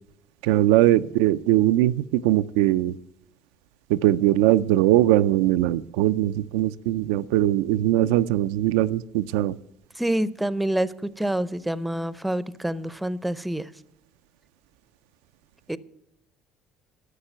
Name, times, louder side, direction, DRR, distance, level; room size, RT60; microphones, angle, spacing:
voice 1, 0.4-3.0 3.9-9.6, right 14 dB, 90° right, 12 dB, 0.3 m, -21 dB
voice 2, 9.9-13.7 15.7-15.8, right 1 dB, 5° right, 18 dB, 0.5 m, -27 dB
11.5 x 6.6 x 8.9 m, 0.82 s
supercardioid pair, 100°, 0 cm